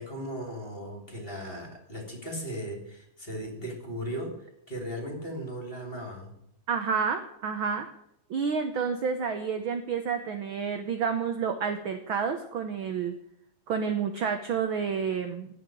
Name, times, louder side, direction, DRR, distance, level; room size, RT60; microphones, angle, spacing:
voice 1, 0.0-6.4, equal, 20° left, 2 dB, 3.1 m, -37 dB
voice 2, 6.7-7.9 8.3-13.1 13.7-15.5, right 6 dB, 65° right, 7 dB, 1.3 m, -29 dB
17.0 x 5.9 x 8.7 m, 0.76 s
omnidirectional pair, 3.5 m